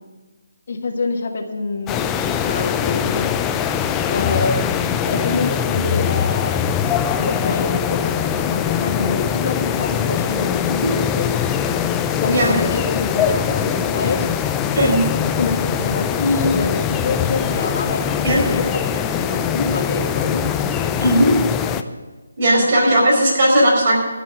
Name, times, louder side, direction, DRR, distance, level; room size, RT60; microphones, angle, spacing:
voice 1, 0.7-3.3 4.1-6.6 7.0-11.6 12.1-14.3 15.4-20.4, left 3 dB, 55° left, 3 dB, 1.4 m, -26 dB
sound 1, 1.9-21.8, left 8 dB, 15° left, 0.4 m, -22 dB
voice 2, 14.7-15.0 18.2-18.4 21.0-21.3 22.4-24.0, right 1 dB, 50° right, -2 dB, 4.8 m, -16 dB
12.5 x 6.0 x 8.5 m, 1.3 s
figure-of-eight pair, 160°, 0 cm